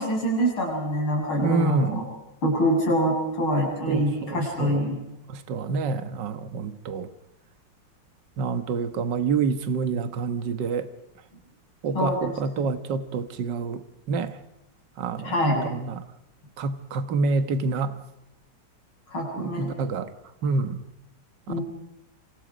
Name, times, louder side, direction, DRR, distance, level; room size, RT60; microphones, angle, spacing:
voice 1, 0.0-2.0 2.4-5.0 11.9-12.7 15.2-15.6 19.1-19.7 21.5-21.6, equal, 80° left, -1 dB, 8.6 m, -25 dB
voice 2, 1.4-2.0 3.9-4.8 5.3-7.1 8.4-10.9 11.8-14.4 15.0-16.0 16.6-18.0 19.3-20.1 20.4-20.9, right 4 dB, 60° right, 10 dB, 1.9 m, -27 dB
28.0 x 26.0 x 5.1 m, 0.93 s
omnidirectional pair, 2.3 m